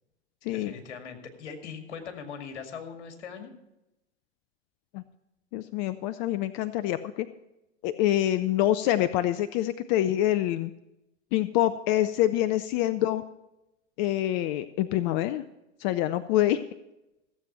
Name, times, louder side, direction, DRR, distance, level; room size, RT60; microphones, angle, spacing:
voice 1, 0.5-3.5, left 6 dB, 70° left, 5 dB, 2.2 m, -40 dB
voice 2, 5.5-7.3 7.8-10.7 11.3-13.2 14.0-15.4 15.8-16.6, left 13 dB, 40° left, 13 dB, 0.5 m, -26 dB
15.5 x 7.8 x 5.7 m, 0.93 s
figure-of-eight pair, 90°, 35 cm